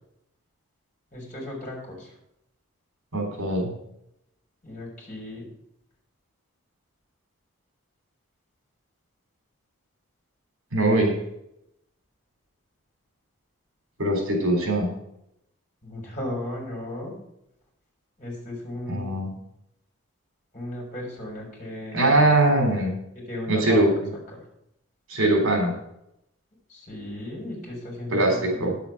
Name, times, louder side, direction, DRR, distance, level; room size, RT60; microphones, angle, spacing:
voice 1, 1.1-2.1 4.6-5.5 15.8-17.1 18.2-19.1 20.5-22.3 23.3-23.9 24.3-24.4 26.7-28.8, left 1 dB, 35° left, -2 dB, 4.1 m, -35 dB
voice 2, 3.1-3.7 10.7-11.2 14.0-14.9 18.9-19.3 21.9-23.0 23.5-24.1 25.1-25.8 28.1-28.8, right 1 dB, 80° right, 2 dB, 3.5 m, -21 dB
9.6 x 7.0 x 5.9 m, 0.79 s
head